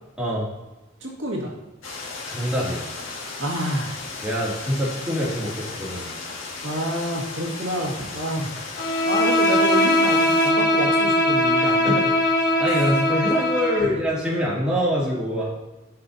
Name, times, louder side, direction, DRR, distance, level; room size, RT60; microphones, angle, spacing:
voice 1, 0.2-0.5 2.3-2.9 4.2-6.1 11.6-12.0 12.6-15.5, equal, 5° right, -7 dB, 2.5 m, -25 dB
voice 2, 1.0-1.5 3.4-4.0 6.6-8.5 9.0-12.1 13.8-13.9, right 1 dB, 75° right, -2 dB, 1.9 m, -28 dB
sound 1, 1.8-10.5, left 3 dB, 85° left, 1.7 m, -35 dB
Bowed string instrument, 8.8-14.0, left 1 dB, 55° left, 1.4 m, -20 dB
13.5 x 5.9 x 2.8 m, 1.1 s
head